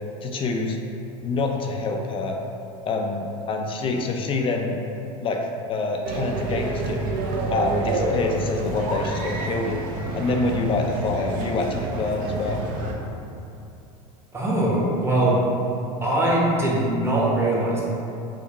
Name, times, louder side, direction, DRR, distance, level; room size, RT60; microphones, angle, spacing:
voice 1, 0.2-0.8 1.2-2.4 2.8-4.8 5.2-7.1 7.5-9.9 10.1-12.6, left 3 dB, 30° left, 2 dB, 0.4 m, -26 dB
sound 1, 6.0-12.9, right 2 dB, 50° right, 0.6 m, -28 dB
voice 2, 14.3-15.4 16.0-17.8, right 1 dB, 15° right, -5 dB, 0.9 m, -21 dB
4.9 x 2.2 x 2.9 m, 2.7 s
supercardioid pair, 105°, 18 cm